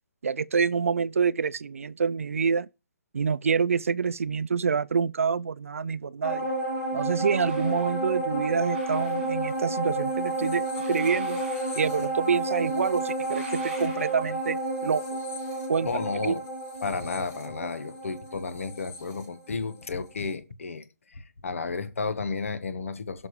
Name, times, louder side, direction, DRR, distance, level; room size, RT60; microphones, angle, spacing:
voice 1, 0.2-2.7 3.1-6.5 6.9-11.4 11.8-15.2 15.7-15.9 16.2-16.4, right 5 dB, 50° right, 0.4 m, -27 dB
sound 1, 6.2-19.9 20.3-20.4, right 2 dB, 15° left, 1.2 m, -31 dB
sound 2, 7.1-8.0 8.6-9.7 10.7-12.3 13.2-14.5, right 3 dB, 35° right, 5.8 m, -48 dB
voice 2, 15.8-16.4 16.8-23.3, left 4 dB, 50° left, 1.1 m, -32 dB
17.0 x 6.0 x 3.1 m
hypercardioid pair, 180°, 9 cm